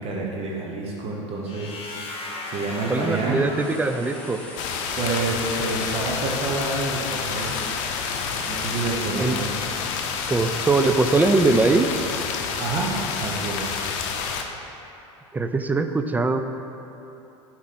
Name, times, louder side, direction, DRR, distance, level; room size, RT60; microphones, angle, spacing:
voice 1, 0.0-1.8 2.5-3.4 5.0-7.6 8.5-9.6 12.6-12.9 13.2-13.8, right 3 dB, 40° right, -3 dB, 1.1 m, -28 dB
sound 1, 1.5-5.3, left 2 dB, 40° left, 1.1 m, -37 dB
sound 2, 2.6-2.7 2.9-9.5, left 1 dB, 5° left, 1.4 m, -42 dB
voice 2, 2.9-4.4 9.2-9.4 10.3-12.0 15.3-16.4, right 3 dB, 10° right, 8 dB, 0.4 m, -21 dB
sound 3, 4.6-14.4, left 6 dB, 60° left, 0.6 m, -29 dB
7.2 x 4.5 x 4.2 m, 2.9 s
hypercardioid pair, 85°, 16 cm